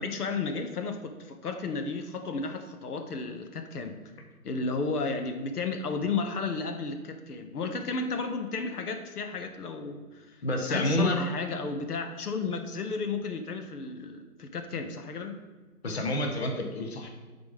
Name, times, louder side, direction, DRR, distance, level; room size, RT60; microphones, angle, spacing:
voice 1, 0.0-4.0 4.4-15.4, left 4 dB, 80° left, 7 dB, 0.9 m, -33 dB
voice 2, 10.4-11.2 15.8-17.1, left 1 dB, 45° left, 3 dB, 0.9 m, -28 dB
6.9 x 4.1 x 5.0 m, 1.3 s
hypercardioid pair, 170°, 45 cm